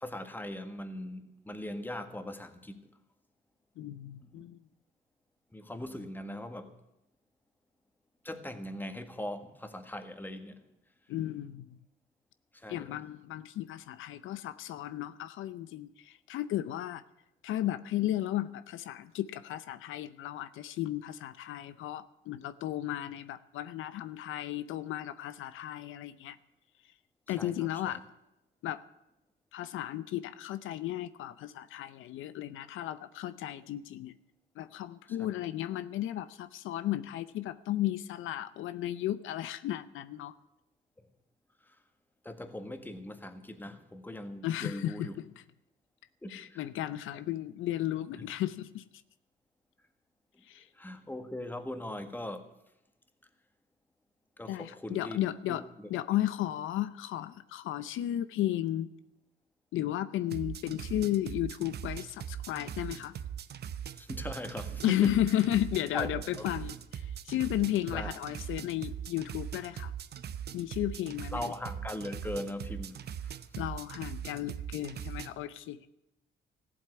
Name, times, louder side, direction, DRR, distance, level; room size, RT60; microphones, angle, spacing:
voice 1, 0.0-2.9 4.3-4.5 5.5-6.8 8.2-10.6 12.5-12.9 27.4-28.0 35.1-35.3 41.7-41.8 42.2-45.2 46.2-46.6 50.7-52.5 54.4-55.2 55.5-55.9 64.0-65.1 65.9-66.5 67.9-68.2 71.3-73.0, left 1 dB, 10° left, 1.6 m, -40 dB
voice 2, 3.8-4.6 11.1-11.8 12.7-17.0 17.4-26.4 27.3-28.0 28.6-28.8 29.5-34.1 34.6-40.3 44.4-45.3 46.3-48.8 50.5-50.7 54.5-55.6 55.9-58.9 59.7-63.1 64.8-69.9 70.5-71.4 73.5-75.9, left 13 dB, 85° left, 0.6 m, -34 dB
sound 1, 60.3-75.3, right 9 dB, 55° right, 0.8 m, -40 dB
14.5 x 8.0 x 9.5 m
cardioid pair, 90°, 20 cm